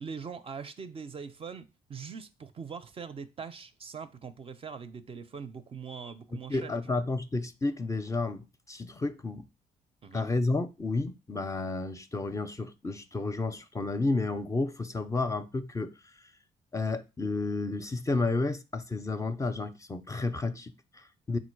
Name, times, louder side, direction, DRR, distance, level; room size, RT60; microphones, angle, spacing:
voice 1, 0.0-7.0 10.0-10.3, right 6 dB, 35° right, 0.4 m, -42 dB
voice 2, 6.5-9.5 10.1-16.3 16.7-21.4, left 3 dB, 20° left, 0.4 m, -31 dB
3.8 x 2.4 x 4.5 m
supercardioid pair, 65°, 15 cm